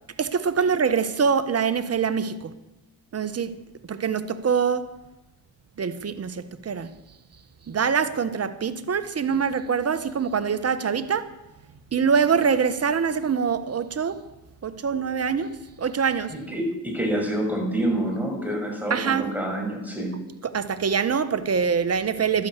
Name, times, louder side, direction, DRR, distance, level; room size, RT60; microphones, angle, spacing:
voice 1, 0.2-2.5 3.1-3.5 3.9-4.9 5.8-6.9 7.7-11.3 11.9-14.2 14.6-16.4 18.9-19.3 20.4-22.5, right 6 dB, 35° right, 1.3 m, -24 dB
voice 2, 16.3-20.3, right 1 dB, 5° right, 6.2 m, -27 dB
12.5 x 10.5 x 8.2 m
supercardioid pair, 75°, 43 cm